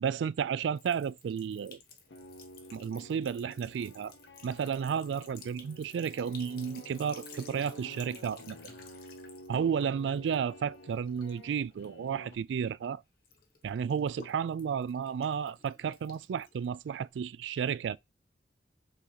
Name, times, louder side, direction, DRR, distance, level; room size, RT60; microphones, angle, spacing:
voice 1, 0.0-1.8 2.7-4.1 4.4-8.6 9.5-13.0 13.6-18.0, right 7 dB, 85° right, 0.3 m, -32 dB
Sink (filling or washing) / Trickle dribble, 0.7-12.9 13.2-17.1, left 4 dB, 55° left, 1.3 m, -55 dB
sound 1, 1.9-12.4, left 1 dB, 90° left, 1.0 m, -51 dB
4.8 x 3.9 x 2.8 m
head